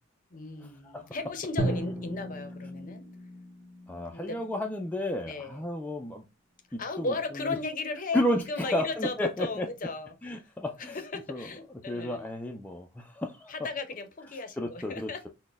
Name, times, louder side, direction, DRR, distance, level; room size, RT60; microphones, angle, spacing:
voice 1, 0.3-3.1 4.1-4.4 5.2-5.6 6.8-8.2 8.5-10.1 10.9-12.3 13.5-15.3, left 3 dB, 40° left, 0.6 m, -35 dB
Drum, 1.6-5.6, right 1 dB, 15° right, 0.8 m, -36 dB
voice 2, 3.9-6.2 6.7-7.6 8.1-9.7 10.2-11.0 11.3-11.5 11.9-13.5 14.6-15.3, left 1 dB, 10° left, 0.3 m, -32 dB
4.1 x 2.1 x 3.3 m
head